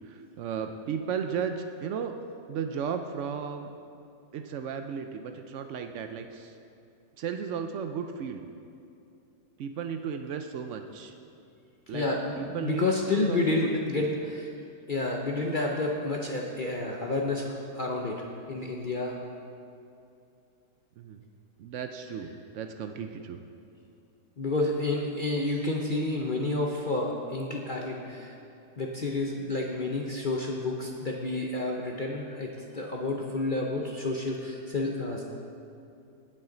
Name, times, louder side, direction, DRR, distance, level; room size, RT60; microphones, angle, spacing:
voice 1, 0.1-2.1 2.5-3.7 4.3-6.5 7.2-8.4 9.6-11.1 11.9-12.1 12.4-13.4 13.9-14.1 21.0-21.2 21.6-23.4, right 7 dB, 80° right, 6 dB, 0.6 m, -35 dB
voice 2, 11.9-14.5 14.9-19.2 24.4-28.3 28.8-35.2, left 2 dB, 60° left, -1 dB, 0.5 m, -30 dB
18.0 x 6.3 x 3.9 m, 2.6 s
omnidirectional pair, 1.9 m